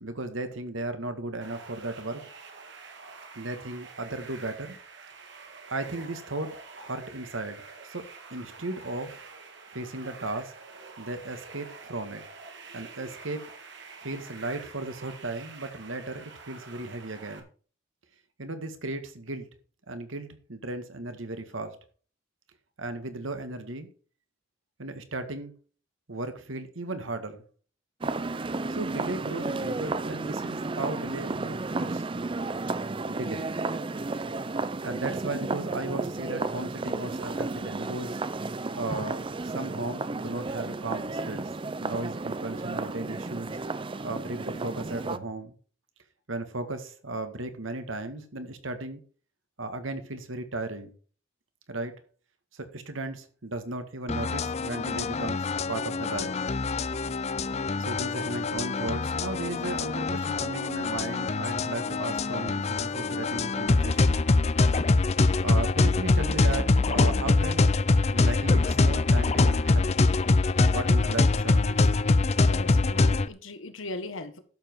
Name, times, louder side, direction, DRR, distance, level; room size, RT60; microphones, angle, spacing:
voice 1, 0.0-2.2 3.3-4.8 5.7-8.0 8.3-9.2 9.7-10.5 11.0-12.2 12.7-13.4 14.0-17.5 18.4-19.5 19.9-21.8 22.8-23.9 24.8-25.5 26.1-27.4 28.7-32.1 33.1-33.5 34.8-38.2 38.8-41.5 41.8-43.6 44.0-45.5 46.3-49.0 49.6-50.9 51.7-51.9 52.5-56.3 57.8-64.2 65.4-67.7 68.1-69.9 70.6-71.9, right 2 dB, 75° right, 1.8 m, -35 dB
sound 1, 1.4-17.4, right 4 dB, 60° right, 2.0 m, -47 dB
sound 2, 28.0-45.2, right 3 dB, 25° right, 0.5 m, -33 dB
sound 3, 54.1-73.3, left 3 dB, 35° left, 0.5 m, -24 dB
voice 2, 72.4-74.4, left 2 dB, 75° left, 1.5 m, -39 dB
11.5 x 7.5 x 4.6 m
head